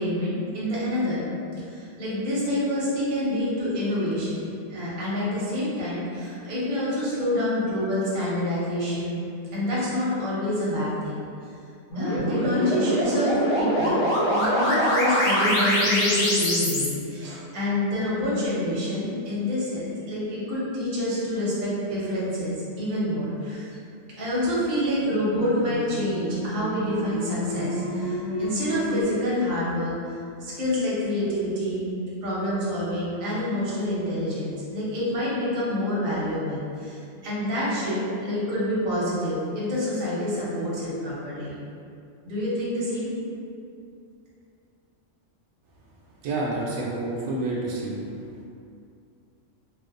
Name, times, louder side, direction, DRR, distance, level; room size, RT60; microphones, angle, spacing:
voice 1, 0.0-1.3 1.7-11.3 11.9-23.8 24.2-30.1 30.4-31.9 32.2-41.5 42.2-43.1, left 1 dB, 50° right, -8 dB, 0.8 m, -27 dB
sound 1, 11.9-16.9 25.1-29.0, equal, 80° left, 1.0 m, -25 dB
voice 2, 46.2-48.0, right 2 dB, 90° right, -5 dB, 1.0 m, -28 dB
2.5 x 2.1 x 2.4 m, 2.5 s
omnidirectional pair, 1.3 m